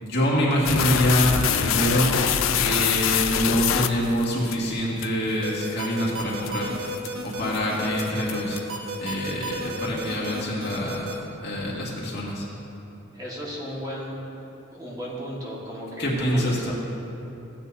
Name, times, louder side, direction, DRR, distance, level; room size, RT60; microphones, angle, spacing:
voice 1, 0.0-2.2 2.5-6.7 7.2-8.6 9.0-11.1 11.4-12.5 16.0-16.7, equal, 55° left, -5 dB, 2.1 m, -25 dB
sound 1, 0.7-4.6 5.0-5.1 5.7-5.8 6.2-6.5 7.0-7.3 7.5-7.6 8.0-8.8, left 8 dB, 80° left, 0.5 m, -24 dB
sound 2, 5.4-11.1, right 2 dB, 80° right, 1.4 m, -33 dB
voice 2, 13.1-14.2 14.7-16.7, equal, 20° right, -5 dB, 1.7 m, -35 dB
16.0 x 9.2 x 2.8 m, 3.0 s
head